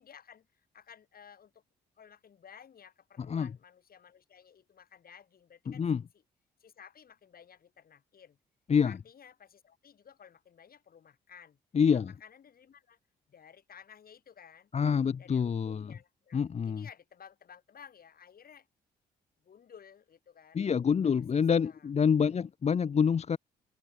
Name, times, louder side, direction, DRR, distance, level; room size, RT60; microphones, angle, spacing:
voice 1, 0.0-1.6 2.0-6.0 6.6-8.4 8.8-11.6 11.9-13.0 13.3-14.7 15.2-18.7 19.4-20.6 21.0-21.9, left 8 dB, 55° left, 2.5 m, -55 dB
voice 2, 5.7-6.0 8.7-9.0 11.7-12.1 14.7-15.9 16.3-16.9 20.5-23.4, left 6 dB, 35° left, 0.6 m, -27 dB
supercardioid pair, 55°, 19 cm